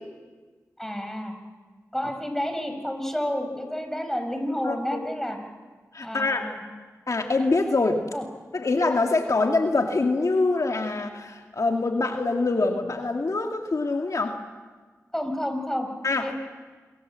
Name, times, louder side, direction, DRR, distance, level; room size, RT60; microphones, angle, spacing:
voice 1, 0.8-1.3 1.9-5.4 6.0-6.6 8.1-8.2 15.1-15.9 16.2-16.3, equal, 5° left, 5 dB, 5.4 m, -30 dB
voice 2, 4.6-5.0 5.9-6.5 7.1-8.0 8.5-14.4 16.0-16.3, left 3 dB, 65° left, 3 dB, 2.2 m, -24 dB
27.0 x 23.5 x 7.6 m, 1.4 s
cardioid pair, 45°, 6 cm